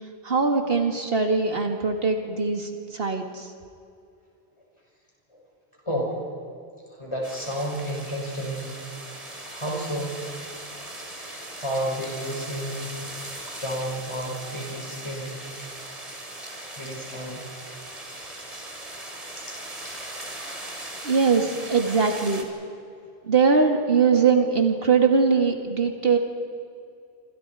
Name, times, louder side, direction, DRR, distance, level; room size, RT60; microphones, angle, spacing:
voice 1, 0.2-3.5 21.0-22.5 23.2-26.2, right 5 dB, 65° right, 4 dB, 2.3 m, -21 dB
voice 2, 5.8-6.2 6.9-8.7 9.5-10.1 11.2-13.0 13.6-15.7 16.5-17.5 19.3-20.0, equal, 30° left, -2 dB, 6.4 m, -32 dB
sound 1, 7.2-22.4, right 1 dB, 35° right, 2.8 m, -39 dB
27.0 x 26.5 x 4.9 m, 2.5 s
omnidirectional pair, 1.1 m